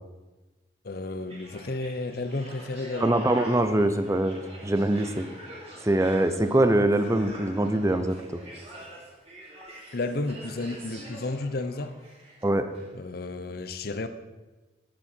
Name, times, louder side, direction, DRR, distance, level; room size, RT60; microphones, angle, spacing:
voice 1, 0.8-3.1 9.9-11.9 12.9-14.1, left 2 dB, 55° left, 10 dB, 0.7 m, -32 dB
sound 1, 1.3-12.4 12.7-12.9, right 1 dB, 35° right, 3.0 m, -45 dB
voice 2, 3.0-5.3 5.8-8.2 12.4-12.7, right 1 dB, 15° right, 9 dB, 0.6 m, -23 dB
10.5 x 10.0 x 4.4 m, 1.2 s
head